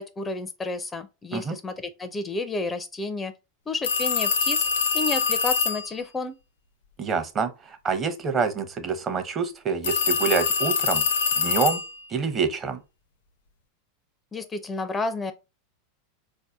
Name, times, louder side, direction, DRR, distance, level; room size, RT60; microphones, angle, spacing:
voice 1, 0.0-3.3 3.7-4.7 4.9-6.4 14.3-15.3, left 3 dB, 20° left, 0.4 m, -31 dB
sound 1, 3.8-5.9 9.8-12.1, left 6 dB, 85° left, 0.5 m, -24 dB
voice 2, 7.0-11.0 11.4-11.8 12.1-12.8, right 5 dB, 30° right, 0.7 m, -26 dB
4.0 x 2.6 x 2.3 m
hypercardioid pair, 105°, 0 cm